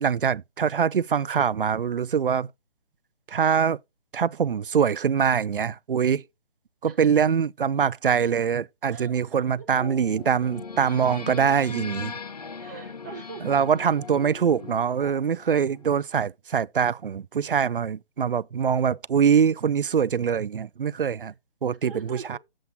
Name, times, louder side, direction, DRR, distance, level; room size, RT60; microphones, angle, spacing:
voice 1, 0.0-2.5 3.3-3.8 4.1-6.2 6.8-12.1 13.4-21.3 21.6-21.9 22.3-22.4, right 7 dB, 60° right, 0.4 m, -23 dB
voice 2, 8.9-9.7 12.5-13.6 21.2-21.3 21.8-22.4, right 5 dB, 20° right, 0.8 m, -42 dB
sound 1, 9.7-15.9, left 5 dB, 40° left, 0.7 m, -39 dB
7.9 x 7.5 x 3.7 m
figure-of-eight pair, 145°, 30 cm